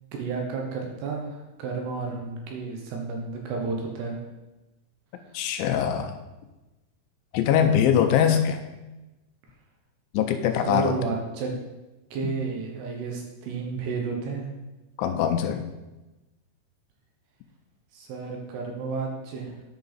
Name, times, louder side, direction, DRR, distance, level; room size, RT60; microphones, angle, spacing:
voice 1, 0.1-4.2 10.5-11.5 12.1-14.5 17.9-19.6, right 4 dB, 75° right, 1 dB, 2.8 m, -32 dB
voice 2, 5.3-6.1 7.3-8.6 10.1-10.9 12.2-12.3 15.0-15.6, left 9 dB, 85° left, 6 dB, 2.9 m, -22 dB
10.0 x 5.7 x 4.1 m, 1.1 s
omnidirectional pair, 5.4 m